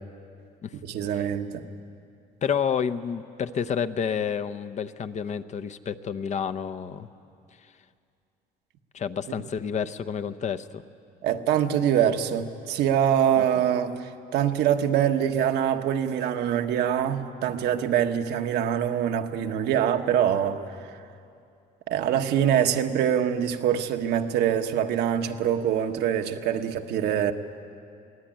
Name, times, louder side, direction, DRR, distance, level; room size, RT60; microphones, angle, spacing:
voice 1, 0.8-1.6 11.2-20.6 21.9-27.3, right 9 dB, 75° right, 6 dB, 1.3 m, -24 dB
voice 2, 2.4-7.1 8.9-10.8 13.4-13.5, left 7 dB, 45° left, 12 dB, 0.8 m, -29 dB
22.5 x 17.5 x 8.9 m, 2.5 s
cardioid pair, 110°, 17 cm